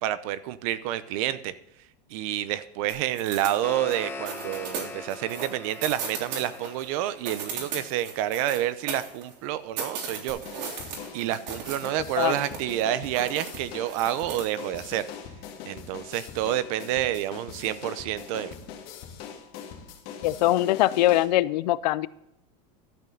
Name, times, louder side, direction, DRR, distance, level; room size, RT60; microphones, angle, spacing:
voice 1, 0.0-1.5 2.1-10.4 11.1-15.0 15.6-18.5, right 12 dB, 55° right, 15 dB, 0.8 m, -29 dB
sound 1, 2.9-4.0 4.3-6.9 7.2-9.4 9.8-11.9 12.2-12.8 13.1-14.6, right 5 dB, 85° right, 3.5 m, -36 dB
sound 2, 3.2-8.3, left 3 dB, 10° left, 0.8 m, -42 dB
sound 3, 10.3-21.3, left 7 dB, 45° left, 2.3 m, -42 dB
voice 2, 20.2-22.1, left 15 dB, 80° left, 18 dB, 0.6 m, -22 dB
12.5 x 8.3 x 3.9 m, 0.81 s
supercardioid pair, 160°, 21 cm